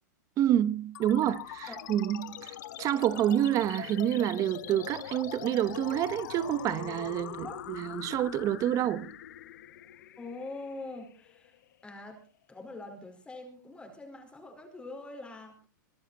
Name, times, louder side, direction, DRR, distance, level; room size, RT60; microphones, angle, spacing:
voice 1, 0.4-9.1, right 11 dB, 35° right, 1.0 m, -28 dB
sound 1, 0.9-11.9, left 13 dB, 70° left, 1.2 m, -43 dB
voice 2, 10.2-11.5 11.8-12.2 12.5-15.6, left 2 dB, 10° left, 4.5 m, -44 dB
23.0 x 11.0 x 4.2 m
hypercardioid pair, 125°, 10 cm